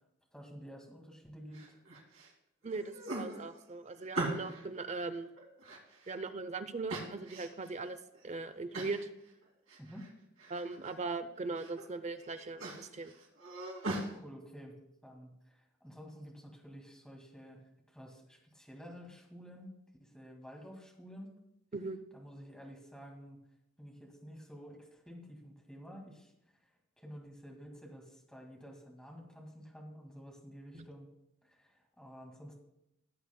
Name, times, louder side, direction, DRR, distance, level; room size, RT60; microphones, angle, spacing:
voice 1, 0.3-1.8 9.8-10.1 13.9-19.7 20.0-21.4 22.1-23.4 23.8-26.3 27.0-31.1 31.4-32.5, equal, 5° left, 0 dB, 2.0 m, -51 dB
sound 1, 1.5-2.3 2.7-4.7 5.1-6.3 6.9-7.7 8.1-8.2 8.7-9.1 9.4-10.1 10.4-10.9 11.4-11.8 12.2-14.1, right 2 dB, 85° right, 2.4 m, -41 dB
voice 2, 2.6-5.3 6.1-8.0 8.2-9.1 10.5-13.1 21.7-22.0 30.7-30.9, right 3 dB, 35° right, 11 dB, 0.6 m, -39 dB
17.0 x 7.9 x 2.2 m, 0.84 s
head